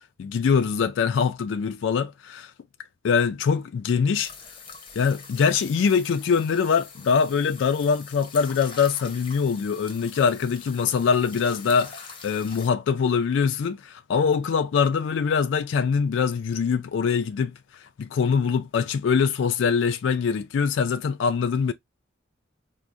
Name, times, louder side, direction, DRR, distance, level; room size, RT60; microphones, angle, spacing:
voice 1, 0.2-2.5 3.0-4.3 5.0-17.5 18.0-21.7, left 6 dB, 70° left, 0.3 m, -23 dB
sound 1, 4.1-12.7, left 5 dB, 25° left, 0.7 m, -44 dB
4.5 x 2.1 x 2.5 m
head